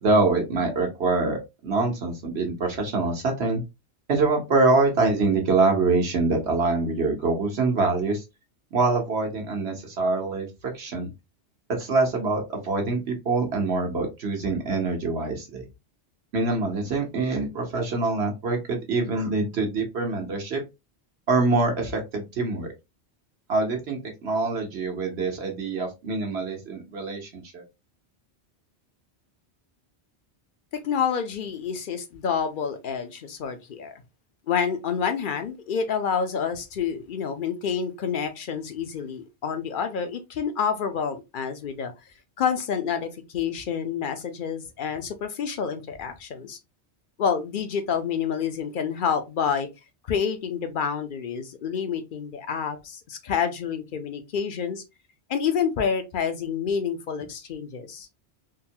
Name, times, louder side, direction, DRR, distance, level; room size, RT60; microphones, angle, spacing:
voice 1, 0.0-3.6 4.1-8.2 8.7-10.5 10.7-11.1 11.8-15.6 16.3-20.6 21.3-22.7 23.5-27.6, right 3 dB, 75° right, 1.2 m, -25 dB
voice 2, 30.7-34.0 34.5-41.9 42.4-46.6 47.2-49.7 50.1-54.8 55.3-58.1, left 7 dB, 55° left, 0.7 m, -28 dB
3.8 x 2.1 x 2.7 m
omnidirectional pair, 1.1 m